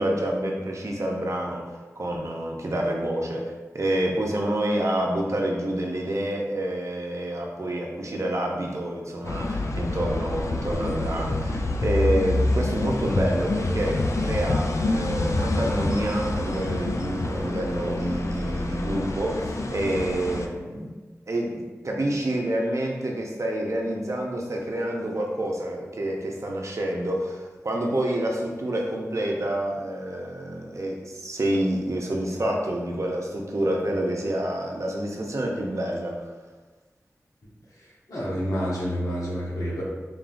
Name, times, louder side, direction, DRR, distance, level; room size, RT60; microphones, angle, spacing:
voice 1, 0.0-3.4 3.7-20.9 21.3-36.3, right 1 dB, 60° right, -1 dB, 0.7 m, -28 dB
sound 1, 9.2-20.5, left 2 dB, 60° left, 0.4 m, -27 dB
voice 2, 37.8-39.8, equal, 75° left, -6 dB, 1.2 m, -29 dB
3.8 x 3.6 x 2.5 m, 1.2 s
wide cardioid pair, 60°, 6 cm